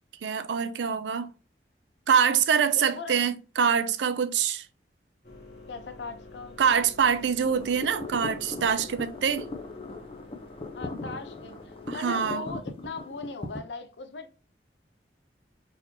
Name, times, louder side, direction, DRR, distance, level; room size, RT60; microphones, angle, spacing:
voice 1, 0.2-1.3 2.1-4.6 6.6-9.5 11.9-12.4, right 7 dB, 85° right, 0.4 m, -25 dB
voice 2, 2.7-3.2 5.7-6.8 10.7-14.3, left 3 dB, 85° left, 0.6 m, -39 dB
sound 1, 5.2-12.3, left 2 dB, 65° left, 1.1 m, -49 dB
sound 2, 7.4-13.6, left 3 dB, 30° left, 0.5 m, -39 dB
3.9 x 2.8 x 2.7 m
head